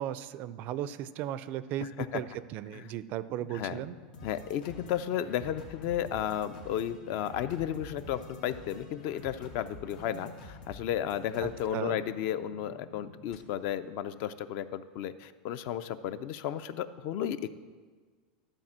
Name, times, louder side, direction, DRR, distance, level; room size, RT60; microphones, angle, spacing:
voice 1, 0.0-4.0 11.4-12.0, right 11 dB, 40° right, 15 dB, 0.3 m, -36 dB
voice 2, 1.8-2.2 2.7-2.9 3.5-3.8 4.2-17.5, left 10 dB, 45° left, 14 dB, 0.4 m, -33 dB
sound 1, 3.4-13.4, left 5 dB, 60° left, 1.4 m, -53 dB
sound 2, 4.1-12.3, left 1 dB, 90° left, 2.1 m, -50 dB
12.0 x 4.4 x 7.4 m, 1.5 s
supercardioid pair, 145°, 5 cm